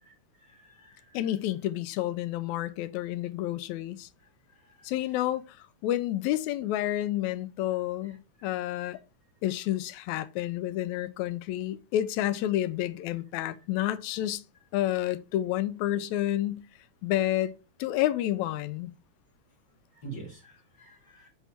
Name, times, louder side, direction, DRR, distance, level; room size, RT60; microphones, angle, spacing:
voice 1, 0.4-1.2 4.6-4.9 8.5-8.6 19.9-21.3, right 4 dB, 40° left, 2.2 m, -46 dB
voice 2, 1.1-4.1 4.8-5.6 5.8-9.0 9.4-14.4 14.7-16.7 17.0-17.5 17.8-18.9, left 13 dB, 85° left, 1.9 m, -29 dB
6.8 x 4.5 x 4.3 m
omnidirectional pair, 3.3 m